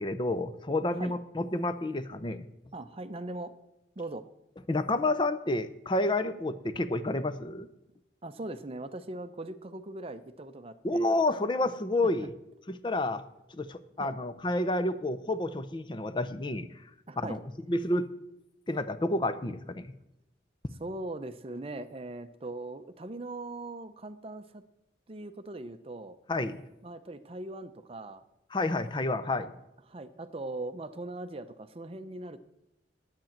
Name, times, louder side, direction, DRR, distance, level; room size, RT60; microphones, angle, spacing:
voice 1, 0.0-2.5 4.7-7.7 10.8-12.3 12.7-13.2 13.5-16.7 17.2-17.4 17.7-18.1 18.7-19.9 26.3-26.6 28.5-29.5, left 2 dB, 25° left, 11 dB, 0.6 m, -29 dB
voice 2, 2.7-3.5 4.0-4.3 8.2-11.2 12.2-12.3 14.0-14.1 17.1-17.4 20.8-24.6 25.1-26.2 26.8-28.2 29.4-29.5 29.9-32.4, right 2 dB, 35° right, 11 dB, 0.6 m, -40 dB
10.5 x 9.0 x 7.2 m, 0.89 s
head